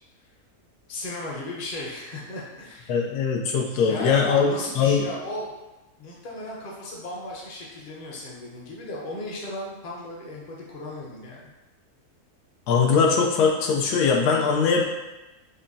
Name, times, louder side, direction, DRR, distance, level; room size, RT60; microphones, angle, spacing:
voice 1, 0.9-3.0 3.6-5.5 6.0-11.5, left 1 dB, 40° left, -4 dB, 0.6 m, -35 dB
voice 2, 2.9-5.0 12.7-14.8, left 5 dB, 85° left, 1 dB, 1.1 m, -21 dB
5.2 x 2.0 x 2.6 m, 1.1 s
omnidirectional pair, 1.6 m